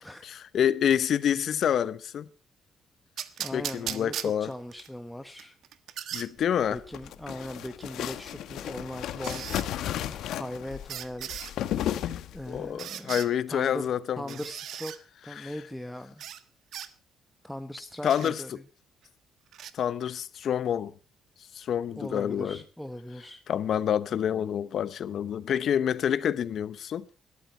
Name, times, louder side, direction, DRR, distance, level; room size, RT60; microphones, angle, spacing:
voice 1, 0.2-2.3 3.5-4.5 6.1-6.8 12.5-14.4 15.4-15.5 18.0-18.6 19.7-20.9 21.5-22.6 23.5-27.0, left 9 dB, 55° left, 0.9 m, -27 dB
sound 1, 3.2-4.9 5.4-6.3 7.8-7.9 9.2-9.7 10.9-11.5 12.8-13.3 14.3-15.0 16.2-16.4 16.7-16.9 18.1-18.3 19.5-19.7, right 10 dB, 70° right, 1.3 m, -37 dB
voice 2, 3.4-5.6 6.7-9.4 10.3-11.3 12.3-13.2 13.5-13.9 14.2-14.9 15.2-16.3 17.4-18.6 22.0-23.4, left 1 dB, 5° left, 1.0 m, -39 dB
sound 2, 6.6-12.7, left 11 dB, 80° left, 1.3 m, -34 dB
20.0 x 13.0 x 4.5 m
cardioid pair, 140°, 0 cm